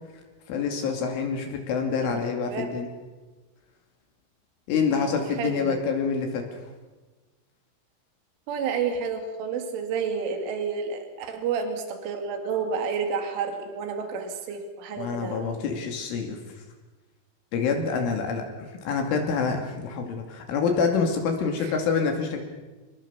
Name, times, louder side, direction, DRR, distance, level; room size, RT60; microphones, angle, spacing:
voice 1, 0.5-2.9 4.7-6.6 15.0-16.4 17.5-22.4, left 5 dB, 70° left, 3 dB, 4.8 m, -27 dB
voice 2, 2.1-2.7 4.9-5.8 8.5-15.6 21.6-21.7, right 6 dB, 70° right, 6 dB, 4.9 m, -30 dB
26.5 x 21.5 x 7.1 m, 1.2 s
omnidirectional pair, 6.0 m